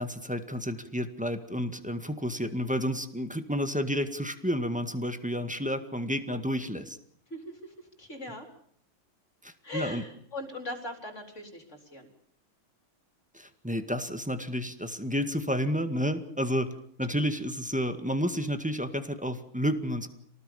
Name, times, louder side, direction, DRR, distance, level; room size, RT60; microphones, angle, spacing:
voice 1, 0.0-7.0 9.4-10.0 13.3-20.1, equal, 5° right, 8 dB, 1.6 m, -31 dB
voice 2, 7.3-8.5 9.6-12.1, left 2 dB, 30° left, 5 dB, 4.5 m, -40 dB
28.0 x 19.0 x 7.1 m, 0.64 s
omnidirectional pair, 2.4 m